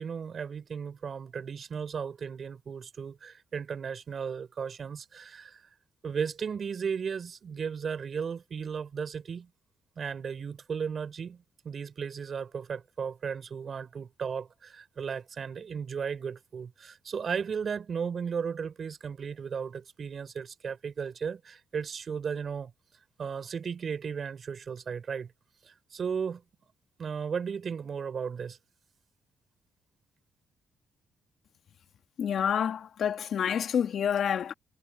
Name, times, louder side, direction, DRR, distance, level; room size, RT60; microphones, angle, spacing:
voice 1, 0.0-5.6 6.0-9.5 10.0-22.7 23.2-25.3 25.6-26.4 27.0-28.6, right 6 dB, 50° right, 4.8 m, -35 dB
voice 2, 32.2-34.5, left 8 dB, 60° left, 1.9 m, -28 dB
cardioid pair, 90°, 0 cm